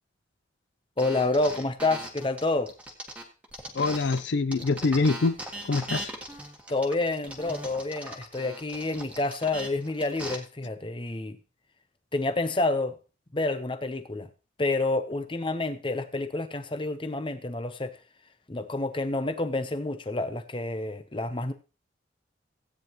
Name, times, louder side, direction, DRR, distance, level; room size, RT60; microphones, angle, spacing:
voice 1, 1.0-2.7 6.7-11.4 12.1-12.9 13.3-14.3 14.6-18.0 18.5-21.5, left 2 dB, 25° left, 10 dB, 0.8 m, -28 dB
sound 1, 1.0-4.2 4.5-10.3, right 1 dB, 5° right, 1.6 m, -39 dB
voice 2, 3.7-5.4 5.6-6.1, left 3 dB, 70° left, 13 dB, 0.5 m, -25 dB
16.0 x 9.2 x 3.0 m, 0.34 s
head